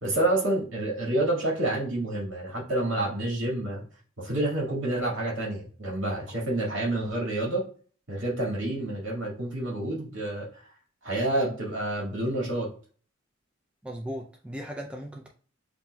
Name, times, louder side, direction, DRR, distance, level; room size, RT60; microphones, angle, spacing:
voice 1, 0.0-3.9 4.2-7.6 8.1-10.6 11.0-12.7, right 1 dB, 70° right, -4 dB, 2.0 m, -28 dB
voice 2, 13.8-15.3, equal, 5° right, 0 dB, 0.3 m, -37 dB
7.3 x 2.5 x 2.2 m, 0.43 s
head